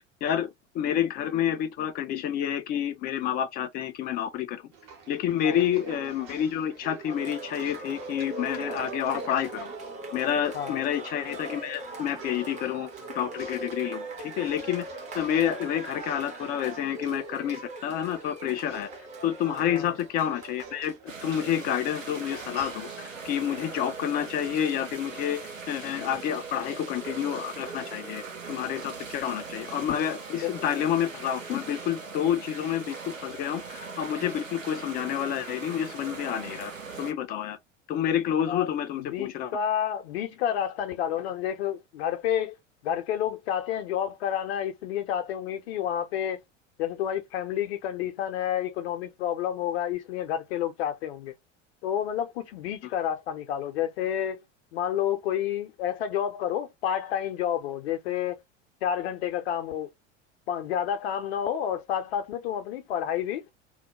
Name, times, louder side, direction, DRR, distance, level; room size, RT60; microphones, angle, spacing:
voice 1, 0.7-4.6 5.1-9.7 10.1-12.9 13.1-14.9 15.1-18.9 19.2-21.0 21.2-25.4 25.7-28.2 28.5-36.7 37.0-37.6 37.9-39.6, left 10 dB, 25° left, 0.4 m, -29 dB
sound 1, 4.7-24.4, right 6 dB, 50° right, 0.9 m, -47 dB
Cheering, 7.1-21.0, right 2 dB, 20° right, 0.7 m, -41 dB
voice 2, 10.5-10.8 19.7-19.9 30.4-30.5 38.5-38.7 39.0-42.6 42.8-46.4 46.8-51.3 51.8-54.4 54.7-58.4 58.8-59.9 60.5-63.4, left 10 dB, 55° left, 0.7 m, -30 dB
sound 2, 21.1-37.1, right 4 dB, 85° right, 0.6 m, -40 dB
2.2 x 2.1 x 2.9 m
figure-of-eight pair, 75°, 38 cm